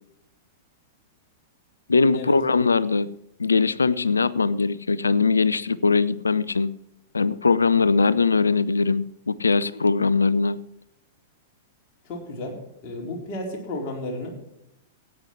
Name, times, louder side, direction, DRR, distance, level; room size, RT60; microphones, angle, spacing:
voice 1, 1.9-3.1 3.4-6.7 7.1-10.6, left 4 dB, 80° left, 0.5 m, -21 dB
voice 2, 12.0-14.3, left 1 dB, 40° left, 4.1 m, -33 dB
15.0 x 9.4 x 4.6 m
figure-of-eight pair, 100°, 0 cm